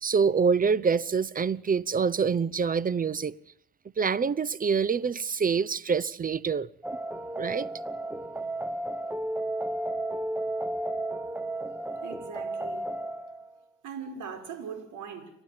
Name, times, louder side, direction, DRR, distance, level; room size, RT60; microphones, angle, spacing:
voice 1, 0.0-3.4 4.0-6.7 7.4-7.7, right 5 dB, 25° right, 0.8 m, -26 dB
sound 1, 6.8-13.5, right 1 dB, 5° right, 1.1 m, -33 dB
voice 2, 11.7-12.8 13.8-15.3, right 6 dB, 55° right, 5.9 m, -40 dB
29.5 x 12.5 x 9.5 m
hypercardioid pair, 70°, 36 cm